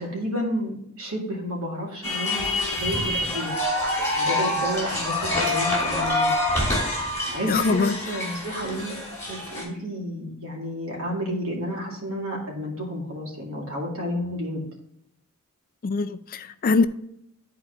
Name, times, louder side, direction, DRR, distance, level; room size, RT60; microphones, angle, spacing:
voice 1, 0.0-3.6 4.2-6.4 7.3-9.0 9.3-14.6, equal, 80° right, -2 dB, 2.3 m, -31 dB
sound 1, 2.0-9.6, left 1 dB, 15° left, 3.2 m, -26 dB
voice 2, 7.5-7.9 15.8-16.9, left 4 dB, 40° left, 10 dB, 0.4 m, -22 dB
11.5 x 4.6 x 2.9 m, 0.74 s
head